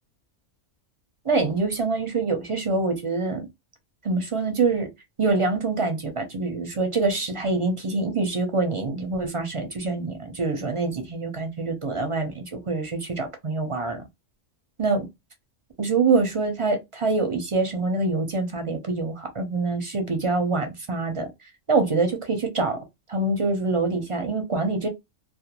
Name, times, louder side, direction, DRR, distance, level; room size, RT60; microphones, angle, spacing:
voice 1, 1.2-3.5 4.0-4.9 5.2-14.0 14.8-15.1 15.8-21.3 21.7-22.8 23.1-24.9, right 3 dB, 40° right, 0.4 m, -25 dB
2.4 x 2.2 x 2.8 m
omnidirectional pair, 1.3 m